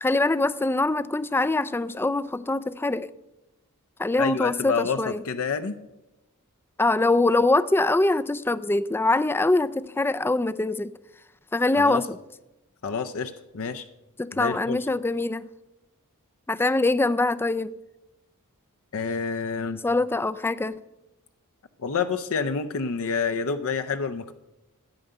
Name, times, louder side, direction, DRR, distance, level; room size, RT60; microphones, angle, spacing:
voice 1, 0.0-3.1 4.0-5.2 6.8-10.9 11.5-12.1 14.2-15.5 16.5-17.7 19.8-20.7, left 2 dB, 10° left, 0.3 m, -23 dB
voice 2, 4.2-5.8 11.8-12.1 12.8-13.9 14.3-14.8 18.9-19.8 21.8-24.3, left 5 dB, 65° left, 0.6 m, -28 dB
13.0 x 9.0 x 6.6 m
head